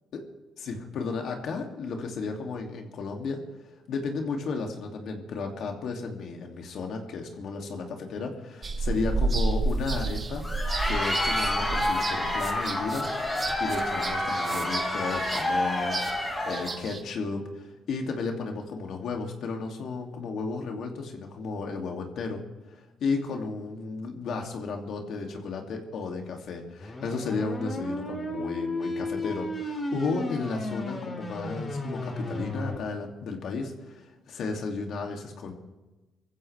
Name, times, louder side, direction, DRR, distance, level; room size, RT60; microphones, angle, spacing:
voice 1, 0.6-3.4 3.9-10.4 10.9-13.1 13.3-22.4 22.7-35.5, left 4 dB, 70° left, 2 dB, 2.7 m, -33 dB
sound 1, 8.6-17.0, right 3 dB, 35° right, 1.6 m, -31 dB
Crowd, 10.2-16.8, left 1 dB, 15° left, 5.7 m, -29 dB
sound 2, 26.8-32.8, left 1 dB, 35° left, 6.4 m, -33 dB
24.5 x 15.0 x 3.5 m, 1.1 s
cardioid pair, 90°, 0 cm